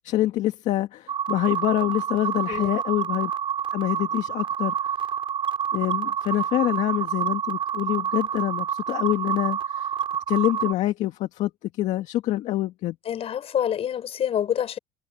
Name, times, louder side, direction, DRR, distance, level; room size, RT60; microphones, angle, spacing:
voice 1, 0.0-3.3 3.7-4.7 5.7-9.9 10.3-13.0, left 15 dB, 70° left, 1.8 m, -26 dB
sound 1, 1.1-10.7, right 9 dB, 45° right, 5.9 m, -28 dB
voice 2, 13.1-14.8, left 9 dB, 50° left, 5.5 m, -26 dB
supercardioid pair, 95°, 13 cm